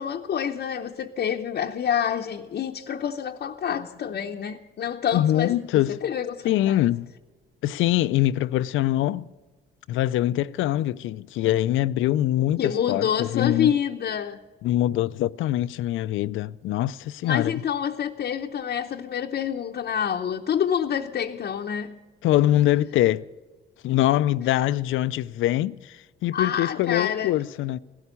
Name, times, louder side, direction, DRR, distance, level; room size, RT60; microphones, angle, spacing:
voice 1, 0.0-6.8 12.6-14.4 17.2-22.0 26.3-27.3, left 8 dB, 55° left, 0.8 m, -27 dB
voice 2, 5.1-6.0 6.4-7.1 7.6-9.3 9.9-13.7 14.6-17.6 22.2-23.2 23.8-27.8, left 14 dB, 80° left, 0.5 m, -23 dB
16.5 x 12.5 x 7.0 m
cardioid pair, 90°, 20 cm